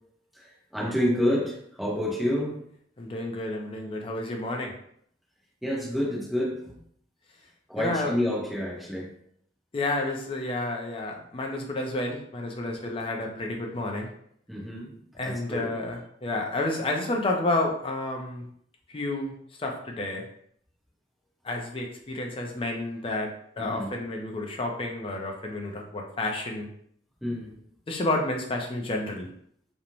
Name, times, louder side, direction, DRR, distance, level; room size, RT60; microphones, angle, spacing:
voice 1, 0.4-2.6 5.6-6.7 7.7-9.1 12.7-12.8 14.5-15.7 23.6-23.9 27.2-27.5, left 1 dB, ahead, -6 dB, 0.7 m, -29 dB
voice 2, 3.0-4.7 7.8-8.2 9.7-14.1 15.1-18.5 18.9-19.3 19.6-20.3 21.4-26.7 27.9-29.3, left 2 dB, 30° left, 1 dB, 0.4 m, -30 dB
2.5 x 2.1 x 2.9 m, 0.67 s
head